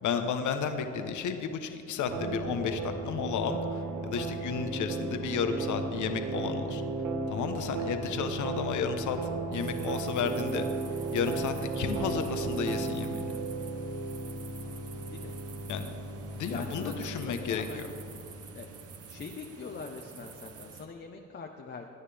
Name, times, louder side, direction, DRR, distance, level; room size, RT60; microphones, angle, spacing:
voice 1, 0.0-6.9 7.3-9.2 9.5-10.7 11.1-13.4 15.7-15.9 16.4-17.9, left 6 dB, 75° left, 7 dB, 1.1 m, -32 dB
sound 1, 2.1-18.8, right 3 dB, 85° right, 1.2 m, -35 dB
sound 2, 9.5-20.9, right 6 dB, 50° right, 1.0 m, -49 dB
voice 2, 14.9-15.3 16.5-17.9 18.5-18.7 19.1-21.9, left 4 dB, 35° left, 2 dB, 1.0 m, -42 dB
21.0 x 9.7 x 3.5 m, 2.6 s
cardioid pair, 90°, 30 cm